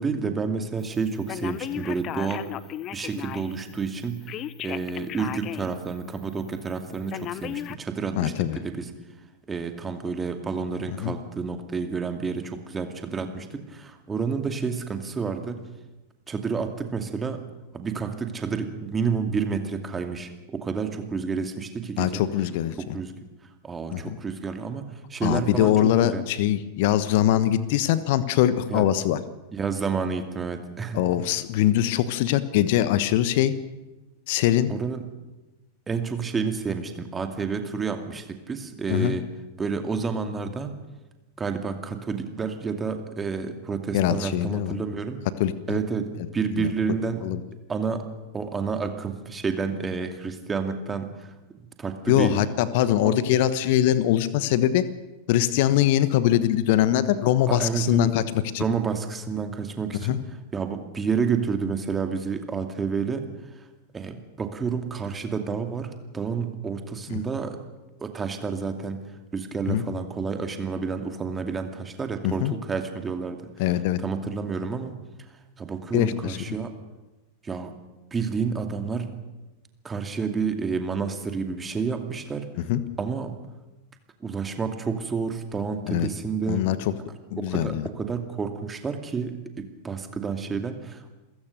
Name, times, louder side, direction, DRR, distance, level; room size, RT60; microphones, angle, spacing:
voice 1, 0.0-2.5 2.9-4.2 4.6-8.9 9.5-15.6 16.3-17.4 17.7-22.2 22.8-23.2 23.6-26.2 28.7-28.9 29.5-31.1 34.7-35.0 35.9-39.3 39.6-40.7 41.4-45.2 45.7-47.2 47.7-48.0 48.3-51.3 51.8-52.4 53.0-53.2 57.5-58.1 58.6-60.2 60.5-63.7 63.9-67.6 68.0-69.0 69.3-73.5 74.0-75.0 75.6-76.7 77.4-77.7 78.1-79.1 79.8-82.5 83.0-83.3 84.2-86.6 87.4-91.1, right 5 dB, 15° right, 6 dB, 2.3 m, -30 dB
Telephone, 1.3-3.6 4.3-5.8 6.2-6.3 7.1-7.8, left 12 dB, 35° left, 0.7 m, -35 dB
voice 2, 8.1-8.6 11.0-11.1 22.0-22.9 23.9-24.2 25.2-29.2 30.9-33.5 34.3-34.7 38.9-39.1 43.9-44.7 45.4-45.8 46.5-46.7 47.2-47.4 52.1-54.9 55.3-58.6 60.0-60.2 69.7-69.8 72.2-72.5 73.6-74.0 75.9-76.4 82.7-82.8 85.9-86.1 86.5-86.8 87.3-87.9, left 12 dB, 50° left, 15 dB, 1.2 m, -22 dB
28.0 x 16.0 x 6.7 m, 1.1 s
figure-of-eight pair, 90°, 0 cm